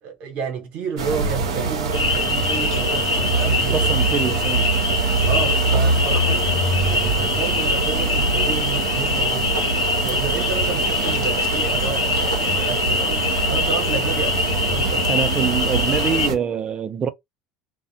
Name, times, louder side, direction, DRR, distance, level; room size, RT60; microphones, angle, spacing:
voice 1, 0.0-3.9 5.3-9.6 9.9-15.1, right 5 dB, 60° right, 0.9 m, -31 dB
sound 1, 1.0-16.4, right 3 dB, 80° right, 0.6 m, -23 dB
sound 2, 1.9-16.3, left 4 dB, 85° left, 0.4 m, -24 dB
voice 2, 3.7-4.7 15.1-17.1, right 7 dB, 35° right, 0.4 m, -24 dB
2.4 x 2.1 x 2.7 m
hypercardioid pair, 70°, 3 cm